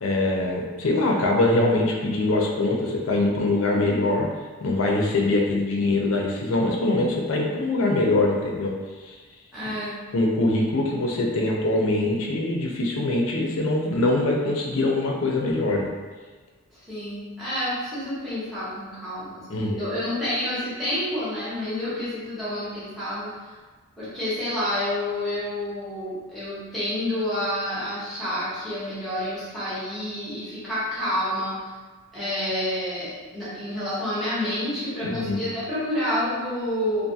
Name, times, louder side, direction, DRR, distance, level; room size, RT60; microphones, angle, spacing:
voice 1, 0.0-4.3 4.6-8.8 9.0-9.2 9.6-9.7 10.1-15.9 19.5-19.9 35.0-35.4, left 2 dB, 70° left, -1 dB, 0.5 m, -23 dB
voice 2, 9.5-10.0 16.9-23.3 24.0-31.6 32.1-37.1, left 1 dB, ahead, -12 dB, 0.8 m, -29 dB
2.5 x 2.3 x 2.7 m, 1.4 s
head